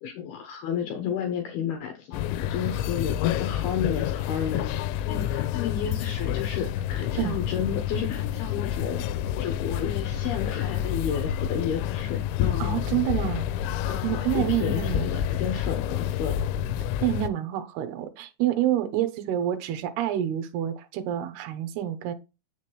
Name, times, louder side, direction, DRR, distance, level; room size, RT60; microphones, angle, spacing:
voice 1, 0.0-9.1 9.4-13.0 13.8-16.4, left 8 dB, 70° left, 2.6 m, -32 dB
sound 1, 2.1-17.3, left 11 dB, 90° left, 2.9 m, -29 dB
voice 2, 12.6-13.5 14.0-15.1 17.0-22.1, right 12 dB, 70° right, 2.8 m, -27 dB
8.1 x 6.7 x 3.1 m
omnidirectional pair, 5.3 m